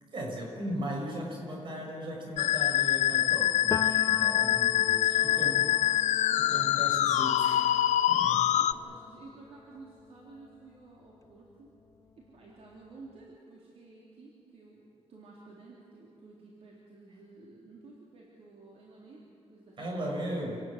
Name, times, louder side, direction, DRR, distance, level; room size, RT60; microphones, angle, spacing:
voice 1, 0.1-5.6 6.3-7.7 8.1-8.4 19.8-20.6, equal, 45° right, 0 dB, 6.3 m, -37 dB
Musical instrument, 2.4-8.7, left 12 dB, 85° left, 0.6 m, -25 dB
Piano, 3.7-11.3 11.7-13.2, left 5 dB, 25° left, 0.6 m, -42 dB
voice 2, 4.5-5.9 6.3-6.9 8.3-11.7 12.2-20.4, right 3 dB, 60° right, -4 dB, 3.8 m, -53 dB
27.5 x 19.5 x 7.6 m, 2.5 s
wide cardioid pair, 150°, 12 cm